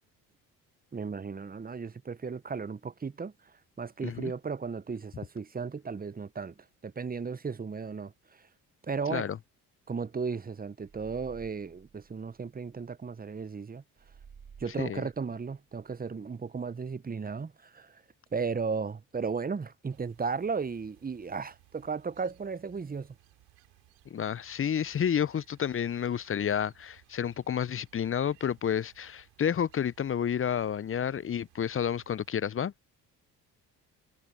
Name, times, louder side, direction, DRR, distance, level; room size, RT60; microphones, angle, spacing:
voice 1, 0.9-6.5 6.8-8.5 8.9-9.3 9.9-13.8 14.6-18.0 18.3-23.1, right 5 dB, 20° right, 0.9 m, -35 dB
sound 1, 10.8-13.0 14.0-16.0, right 6 dB, 45° right, 3.2 m, -54 dB
sound 2, 19.9-32.3, right 19 dB, 75° right, 6.9 m, -63 dB
voice 2, 24.1-32.7, left 8 dB, 30° left, 0.6 m, -30 dB
hypercardioid pair, 50°, 43 cm